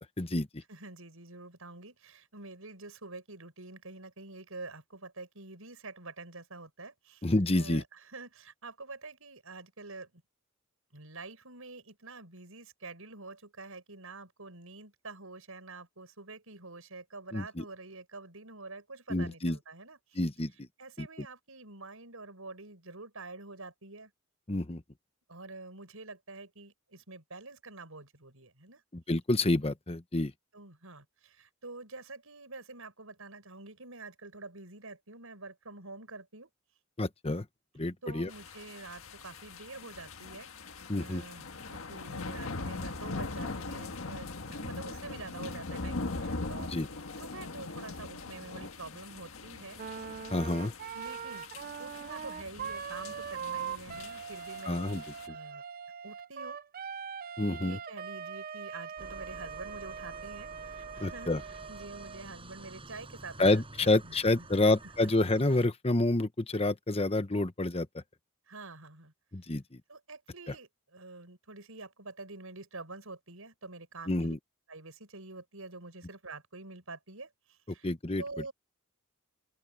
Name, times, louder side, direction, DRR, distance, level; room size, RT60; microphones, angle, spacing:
voice 1, 0.2-0.6 7.2-7.8 17.3-17.6 19.1-19.6 20.1-20.7 21.0-21.3 24.5-24.8 28.9-30.3 37.0-37.4 37.7-38.3 40.9-41.2 46.6-46.9 50.3-50.7 54.6-55.3 57.4-57.8 61.0-61.4 63.4-67.9 69.3-69.8 70.5-70.6 74.1-74.4 77.8-78.2, left 2 dB, 30° left, 1.1 m, -29 dB
voice 2, 0.7-7.2 7.5-7.8 8.1-10.1 10.9-20.2 20.8-24.1 25.3-28.8 30.5-36.5 38.0-46.7 47.2-49.8 50.9-51.4 51.8-54.9 55.3-55.6 56.0-56.6 57.6-61.3 61.7-64.2 64.6-64.7 65.0-65.1 68.5-69.1 69.9-74.4 74.7-77.9 78.2-78.5, right 3 dB, 75° right, 6.2 m, -47 dB
sound 1, 38.3-55.3, left 3 dB, 75° left, 1.6 m, -41 dB
Wind instrument woodwind instrument, 49.7-62.2, right 7 dB, 40° right, 0.6 m, -42 dB
sound 2, 59.0-65.7, right 2 dB, 25° right, 7.9 m, -50 dB
open air
head